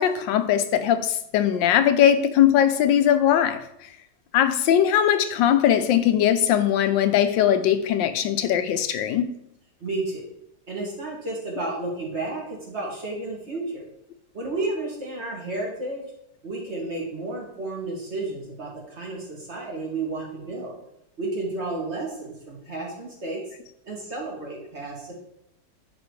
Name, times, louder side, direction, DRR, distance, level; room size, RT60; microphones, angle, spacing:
voice 1, 0.0-3.7 4.3-9.3, left 10 dB, 85° left, 1.3 m, -20 dB
voice 2, 9.8-10.3 10.7-13.8 14.3-16.0 16.4-20.7 21.2-23.4 23.9-25.1, right 2 dB, 35° right, 2.3 m, -32 dB
10.0 x 5.1 x 3.2 m
omnidirectional pair, 2.0 m